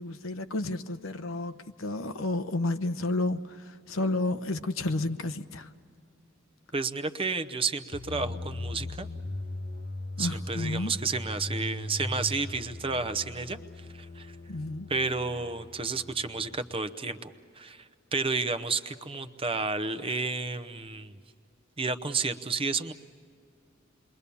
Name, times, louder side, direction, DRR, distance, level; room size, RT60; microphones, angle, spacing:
voice 1, 0.0-5.7 10.2-10.9 14.5-14.9, left 2 dB, 90° left, 0.9 m, -31 dB
voice 2, 6.7-9.1 10.2-13.6 13.9-14.4 14.9-21.1 21.8-22.9, right 4 dB, 30° right, 0.8 m, -31 dB
sound 1, 7.9-16.8, left 1 dB, 55° left, 0.9 m, -39 dB
28.5 x 22.5 x 7.0 m
head